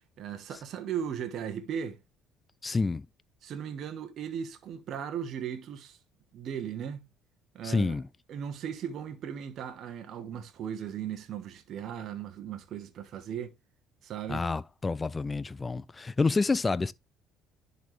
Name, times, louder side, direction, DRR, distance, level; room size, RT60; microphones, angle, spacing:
voice 1, 0.2-2.0 3.4-6.0 6.3-7.1 7.5-8.0 8.3-13.5 14.0-14.5, right 8 dB, 60° right, 1.1 m, -37 dB
voice 2, 2.6-3.0 7.6-8.0 14.3-16.9, left 3 dB, 25° left, 0.3 m, -28 dB
10.5 x 4.1 x 3.3 m
hypercardioid pair, 60°, 0 cm